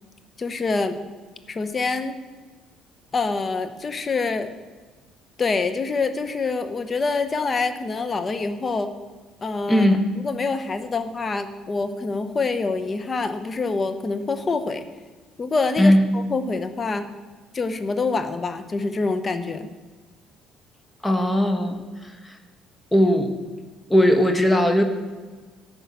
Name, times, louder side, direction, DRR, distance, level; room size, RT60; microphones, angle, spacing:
voice 1, 0.4-1.0 1.5-2.2 3.1-4.5 5.4-8.9 9.4-9.9 10.2-14.8 15.4-17.1 17.5-19.7, left 4 dB, 30° left, 10 dB, 0.9 m, -26 dB
voice 2, 9.7-10.0 15.8-16.0 21.0-21.8 22.9-23.3 23.9-24.8, equal, 10° left, 6 dB, 1.3 m, -18 dB
11.5 x 5.5 x 8.3 m, 1.4 s
cardioid pair, 90°, 0 cm